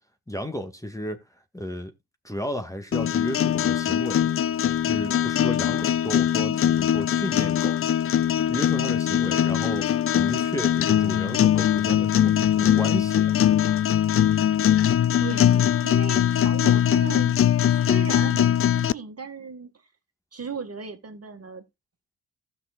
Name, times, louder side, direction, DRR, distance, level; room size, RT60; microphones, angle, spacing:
voice 1, 0.3-1.2 1.5-1.9 2.2-4.3 4.8-7.8 8.5-13.4, equal, 10° left, 1.6 m, -33 dB
sound 1, 2.9-18.9, left 10 dB, 40° left, 0.4 m, -21 dB
voice 2, 14.8-17.4 17.7-19.7 20.3-21.6, right 6 dB, 40° right, 1.9 m, -37 dB
15.5 x 6.5 x 2.4 m
supercardioid pair, 45°, 37 cm